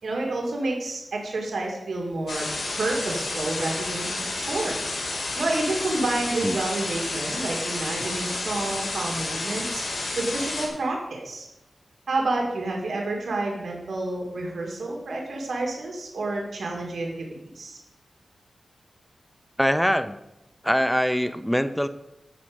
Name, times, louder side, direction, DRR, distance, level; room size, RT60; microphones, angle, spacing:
voice 1, 0.0-2.5 2.8-4.8 5.3-9.8 10.2-11.5 12.1-17.3 17.6-17.8, right 2 dB, 75° right, 0 dB, 2.4 m, -29 dB
sound 1, 2.3-10.7, left 2 dB, 80° left, 3.3 m, -30 dB
voice 2, 19.6-20.2 20.6-21.9, equal, ahead, 12 dB, 0.7 m, -23 dB
12.5 x 4.9 x 7.8 m, 0.89 s
wide cardioid pair, 75°, 0 cm